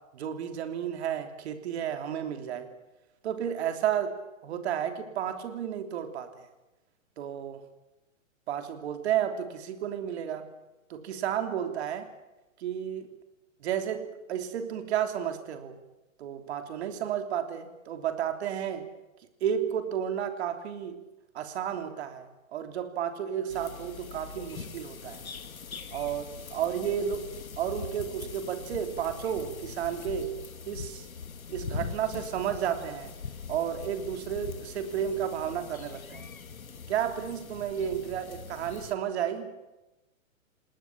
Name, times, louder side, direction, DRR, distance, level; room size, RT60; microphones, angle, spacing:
voice 1, 0.1-2.7 3.2-4.2 4.4-6.3 7.2-7.6 8.5-10.4 10.9-12.1 12.6-13.1 13.6-15.8 16.2-18.9 19.4-21.0 21.4-22.3 22.5-25.2 25.9-27.3 27.6-30.4 30.7-31.1 31.5-33.1 33.5-36.3 36.9-39.5, right 9 dB, 50° right, 7 dB, 3.3 m, -32 dB
sound 1, 23.5-38.9, left 5 dB, 85° left, 2.2 m, -42 dB
28.0 x 19.5 x 7.4 m, 1.0 s
hypercardioid pair, 135°, 41 cm